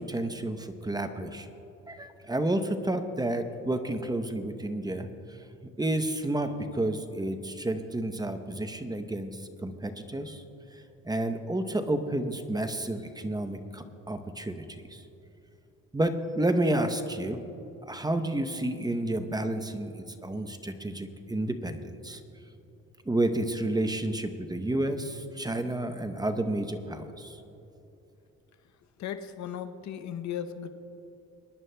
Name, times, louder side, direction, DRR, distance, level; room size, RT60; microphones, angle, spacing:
voice 1, 0.1-1.5 1.9-5.1 5.8-10.4 10.7-15.0 15.9-17.4 17.8-22.2 23.1-27.4, right 1 dB, 15° right, 8 dB, 0.7 m, -30 dB
voice 2, 29.0-30.7, left 9 dB, 65° left, 9 dB, 0.7 m, -36 dB
23.5 x 11.0 x 2.2 m, 2.9 s
cardioid pair, 90°, 30 cm